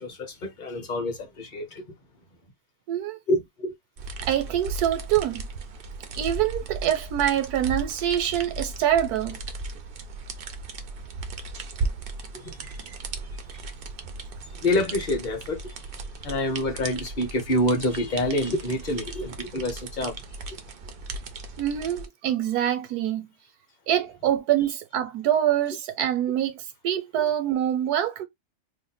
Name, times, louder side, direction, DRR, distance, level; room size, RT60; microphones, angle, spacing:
voice 1, 0.0-1.8 3.3-3.7 12.3-12.6 14.6-15.7 16.2-20.2, left 1 dB, 40° left, 0.8 m, -27 dB
voice 2, 2.9-3.2 4.2-5.5 6.2-9.4 12.6-13.0 21.6-23.3 23.9-28.2, right 11 dB, 90° right, 1.2 m, -25 dB
sound 1, 4.0-22.1, right 3 dB, 75° right, 0.5 m, -36 dB
2.8 x 2.1 x 4.0 m
omnidirectional pair, 1.6 m